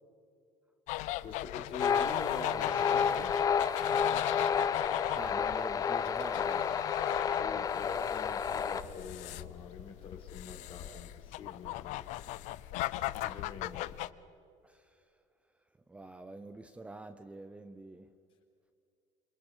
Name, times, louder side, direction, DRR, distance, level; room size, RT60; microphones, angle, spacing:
sound 1, 0.9-14.1, left 16 dB, 65° left, 0.7 m, -38 dB
voice 1, 1.2-3.3 7.3-12.0 13.0-13.9, left 4 dB, 40° left, 3 dB, 4.1 m, -44 dB
sound 2, 1.8-8.8, left 7 dB, 25° left, 0.7 m, -30 dB
voice 2, 5.2-6.8 15.9-18.1, right 2 dB, 10° right, 9 dB, 0.7 m, -46 dB
27.5 x 25.0 x 5.0 m, 2.5 s
cardioid pair, 165°, 13 cm